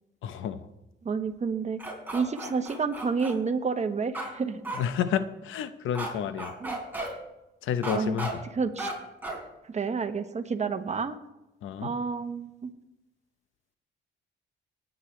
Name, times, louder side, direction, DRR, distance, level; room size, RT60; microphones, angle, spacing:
voice 1, 0.2-0.7 4.7-6.5 7.6-8.4 11.6-11.9, left 8 dB, 80° left, 11 dB, 0.9 m, -30 dB
voice 2, 1.0-1.8 2.1-4.6 6.6-6.8 7.9-8.2 8.6-8.9 9.7-11.2 11.8-12.7, right 5 dB, 35° right, 9 dB, 1.2 m, -30 dB
sound 1, 1.8-3.3 4.1-4.3 4.6-4.8 5.9-6.1 6.4-7.1 7.8-8.3 8.8-8.9 9.2-9.4, right 2 dB, 10° right, 4.4 m, -34 dB
19.5 x 9.4 x 3.3 m, 0.93 s
cardioid pair, 90°, 20 cm